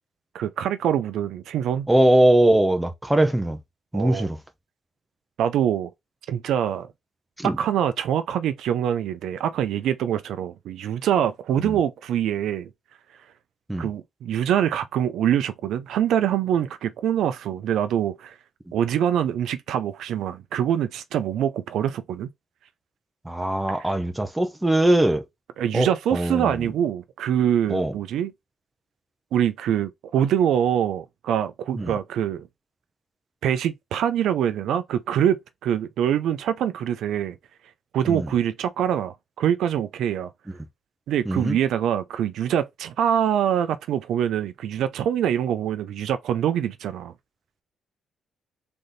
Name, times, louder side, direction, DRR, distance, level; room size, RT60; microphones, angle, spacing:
voice 1, 0.3-1.9 3.9-4.3 5.4-5.9 6.3-6.9 7.4-12.7 13.8-18.3 18.7-22.3 23.7-23.9 25.6-28.3 29.3-32.5 33.4-37.4 37.9-40.3 41.1-47.1, right 9 dB, 75° right, 0.5 m, -24 dB
voice 2, 1.9-3.6 3.9-4.4 7.4-7.6 11.6-11.8 13.7-13.9 23.2-25.2 25.7-26.7 27.7-27.9 31.7-32.0 38.1-38.3 41.3-41.6, right 1 dB, 10° right, 0.9 m, -21 dB
3.9 x 3.5 x 3.9 m
cardioid pair, 90°, 0 cm